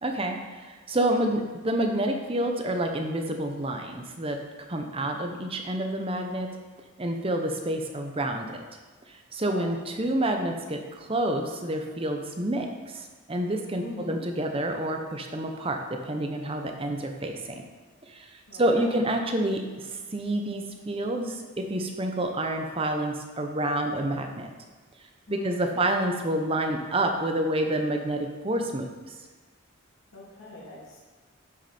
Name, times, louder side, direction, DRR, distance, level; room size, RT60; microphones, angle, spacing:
voice 1, 0.0-4.4 4.7-6.5 7.0-8.6 9.1-12.7 12.9-15.8 16.0-17.6 18.0-24.5 25.3-29.1, right 1 dB, 25° right, 4 dB, 0.8 m, -28 dB
voice 2, 13.8-14.2 18.5-18.9 25.3-25.8 30.1-31.0, left 2 dB, 70° left, -5 dB, 2.6 m, -42 dB
9.6 x 6.4 x 4.3 m, 1.3 s
head